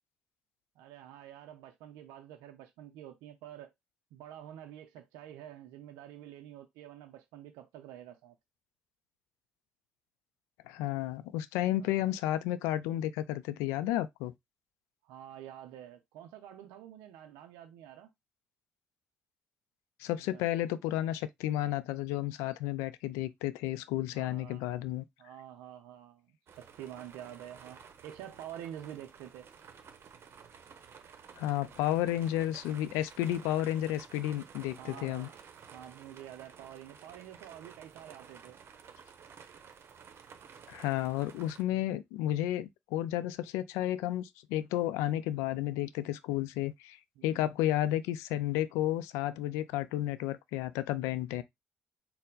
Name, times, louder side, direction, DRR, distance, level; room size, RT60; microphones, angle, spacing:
voice 1, 0.8-3.7 4.1-8.4 11.8-12.1 15.0-18.1 20.2-20.5 24.1-24.6 25.2-29.5 34.8-35.4 35.7-38.6 47.2-47.4 49.3-49.5, right 11 dB, 80° right, 0.4 m, -48 dB
voice 2, 10.7-14.3 20.0-25.0 31.4-35.3 40.7-47.0 47.2-51.4, left 13 dB, 85° left, 0.3 m, -32 dB
sound 1, 26.5-41.6, right 7 dB, 60° right, 0.8 m, -53 dB
4.2 x 2.1 x 3.8 m
hypercardioid pair, 50°, 5 cm